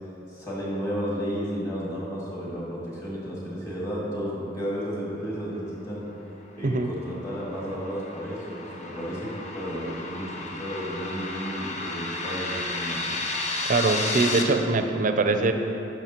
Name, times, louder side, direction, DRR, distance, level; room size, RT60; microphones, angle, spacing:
voice 1, 0.3-6.0 6.6-13.1, equal, 20° left, -6 dB, 1.8 m, -33 dB
sound 1, 6.7-14.4, left 3 dB, 40° left, 0.6 m, -33 dB
voice 2, 13.7-15.5, right 3 dB, 45° right, 7 dB, 0.4 m, -22 dB
10.5 x 5.9 x 2.9 m, 2.9 s
head